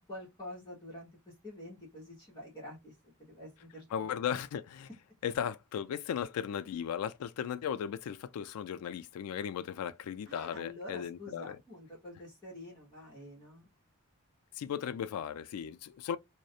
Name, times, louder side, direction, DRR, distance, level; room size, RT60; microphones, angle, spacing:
voice 1, 0.0-2.9 3.2-3.8 10.3-13.7, left 1 dB, 20° left, 0.9 m, -47 dB
voice 2, 3.9-4.9 5.2-11.6 14.6-16.2, left 8 dB, 90° left, 0.3 m, -36 dB
2.4 x 2.0 x 2.6 m
head